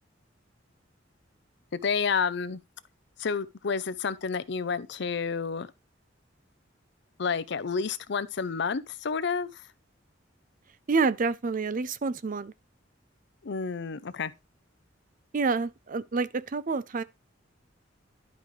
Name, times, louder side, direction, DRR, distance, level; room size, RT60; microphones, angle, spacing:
voice 1, 1.7-2.6 3.2-5.7 7.2-9.6 13.4-14.3, left 5 dB, 65° left, 0.6 m, -30 dB
voice 2, 10.9-12.5 15.3-17.0, right 4 dB, 45° right, 0.5 m, -28 dB
11.5 x 5.2 x 3.2 m
head